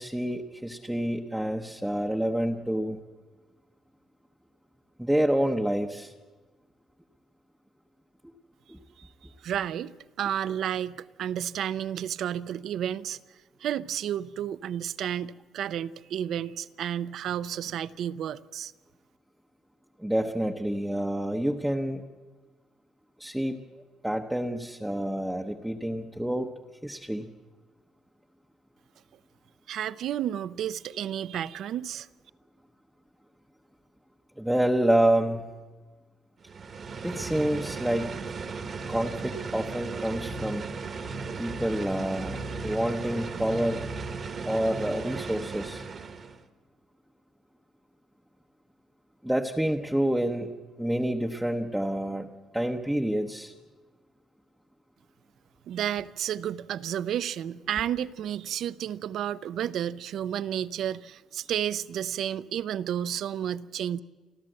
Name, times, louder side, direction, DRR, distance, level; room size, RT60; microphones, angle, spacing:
voice 1, 0.0-3.0 5.0-6.1 8.7-8.8 20.0-22.0 23.2-26.5 26.8-27.3 34.4-35.5 37.0-38.1 38.9-40.7 41.4-43.8 44.4-45.8 49.2-50.5 50.8-52.3 52.5-53.5, right 1 dB, 5° right, 0.8 m, -28 dB
voice 2, 9.4-13.2 13.6-18.7 29.7-32.1 55.7-64.0, right 10 dB, 60° right, 0.6 m, -31 dB
sound 1, 36.4-46.4, right 4 dB, 35° right, 1.3 m, -36 dB
30.0 x 12.5 x 7.7 m
cardioid pair, 150°, 0 cm